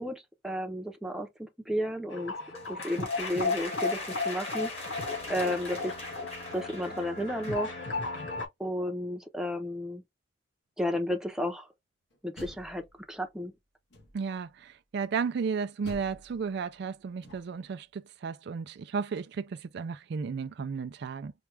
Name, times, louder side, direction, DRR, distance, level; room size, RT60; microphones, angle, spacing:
voice 1, 0.0-2.4 2.7-4.0 4.2-5.9 6.5-7.8 8.6-10.0 10.8-11.7 12.2-13.5, equal, 5° right, 0.7 m, -33 dB
sound 1, 2.1-8.5, left 3 dB, 85° left, 1.9 m, -34 dB
sound 2, 2.5-7.7, left 2 dB, 35° left, 1.7 m, -43 dB
Door, 12.1-13.3 13.9-14.5 15.8-17.7, left 1 dB, 65° left, 1.4 m, -50 dB
voice 2, 14.1-21.3, right 5 dB, 60° right, 0.4 m, -34 dB
4.4 x 2.4 x 3.2 m
head